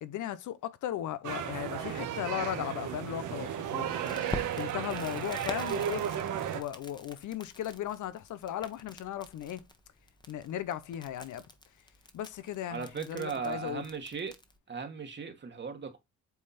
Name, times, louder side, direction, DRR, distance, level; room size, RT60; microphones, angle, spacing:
voice 1, 0.0-3.9 4.6-6.0 6.5-9.6 10.3-11.4 12.1-13.8, left 11 dB, 75° left, 0.9 m, -36 dB
sound 1, 1.2-6.6, right 9 dB, 80° right, 1.5 m, -34 dB
Crackle, 4.0-14.6, left 2 dB, 15° left, 1.3 m, -47 dB
voice 2, 12.7-14.3 14.7-16.0, right 6 dB, 35° right, 1.5 m, -37 dB
8.3 x 3.6 x 4.2 m
cardioid pair, 90°, 30 cm